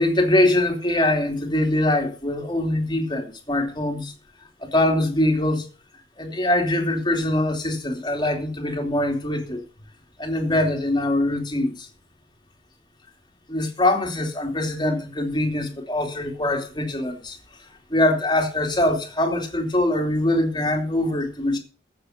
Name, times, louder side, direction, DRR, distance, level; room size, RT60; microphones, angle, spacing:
voice 1, 0.0-4.1 4.6-5.7 6.2-9.6 10.2-11.9 13.5-21.6, left 1 dB, 25° left, 3.1 m, -23 dB
14.5 x 7.1 x 6.0 m
head